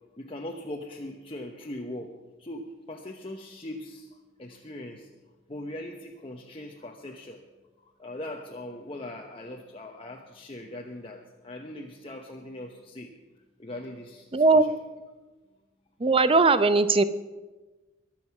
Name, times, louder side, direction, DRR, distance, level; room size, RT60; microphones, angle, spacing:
voice 1, 0.2-2.1 2.4-4.1 4.4-5.1 5.5-7.4 8.0-13.1 13.6-14.7, left 1 dB, 30° left, 1 dB, 0.9 m, -40 dB
voice 2, 14.3-14.6 16.0-17.0, right 3 dB, 30° right, 13 dB, 0.6 m, -19 dB
22.5 x 7.7 x 6.0 m, 1.2 s
head